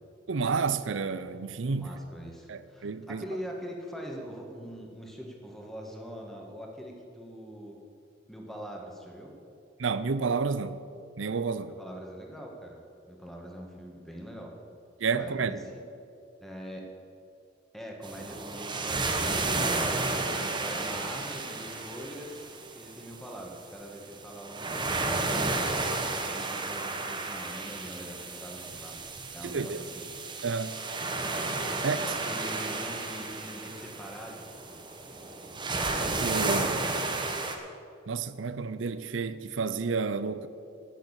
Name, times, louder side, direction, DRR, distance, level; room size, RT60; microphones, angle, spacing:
voice 1, 0.3-1.9 2.5-3.2 9.8-10.8 11.2-11.7 15.0-15.6 29.4-29.8 30.4-30.8 31.8-32.0 36.2-36.8 38.1-40.5, right 5 dB, 75° right, 0.6 m, -30 dB
voice 2, 1.7-7.8 8.3-9.3 11.7-12.8 13.1-14.5 15.2-15.8 16.4-16.9 17.7-19.9 20.5-25.7 26.2-29.0 29.3-30.0 31.8-34.5, equal, ahead, 1.7 m, -43 dB
sound 1, 18.0-37.6, right 3 dB, 25° right, 1.1 m, -32 dB
10.5 x 8.1 x 8.3 m
head